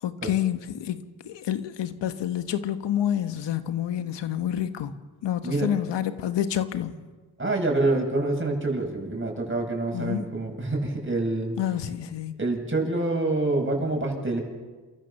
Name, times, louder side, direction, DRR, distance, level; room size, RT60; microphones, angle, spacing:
voice 1, 0.0-4.9 5.2-7.0 9.9-10.3 11.6-12.4, left 10 dB, 75° left, 1.5 m, -28 dB
voice 2, 7.4-11.6 12.4-14.4, right 2 dB, 25° right, 7.6 m, -26 dB
28.5 x 14.0 x 7.2 m
supercardioid pair, 45°, 43 cm